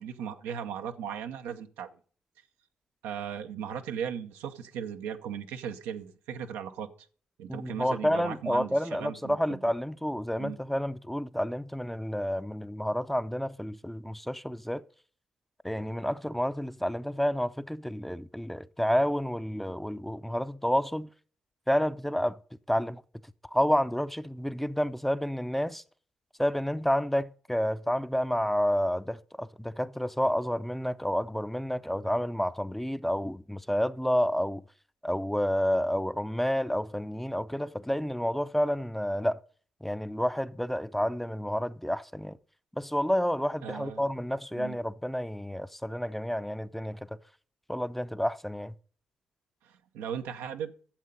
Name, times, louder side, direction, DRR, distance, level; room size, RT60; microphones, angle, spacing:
voice 1, 0.0-1.9 3.0-6.9 7.4-9.6 10.4-10.6 43.6-44.0 44.6-44.8 49.6-50.7, right 8 dB, 85° right, 0.8 m, -37 dB
voice 2, 7.5-14.8 15.6-21.1 21.7-22.4 22.7-23.0 23.5-25.8 26.4-34.6 35.0-39.4 39.8-42.4 42.8-47.0 47.7-48.7, equal, 5° left, 0.6 m, -29 dB
11.5 x 7.5 x 5.3 m
hypercardioid pair, 45°, 4 cm